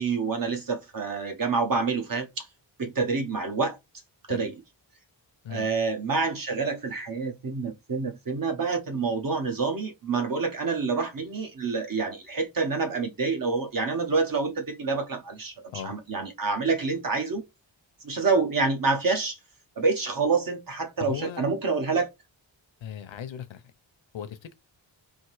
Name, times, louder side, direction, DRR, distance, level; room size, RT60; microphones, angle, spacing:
voice 1, 0.0-2.5 2.8-3.8 4.3-4.5 5.5-15.5 15.8-17.4 18.0-19.4 19.8-22.1, right 4 dB, 50° right, 0.9 m, -27 dB
voice 2, 21.0-21.5 22.8-23.6 24.1-24.5, left 8 dB, 80° left, 0.8 m, -37 dB
3.6 x 2.6 x 4.6 m
wide cardioid pair, 170°, 45 cm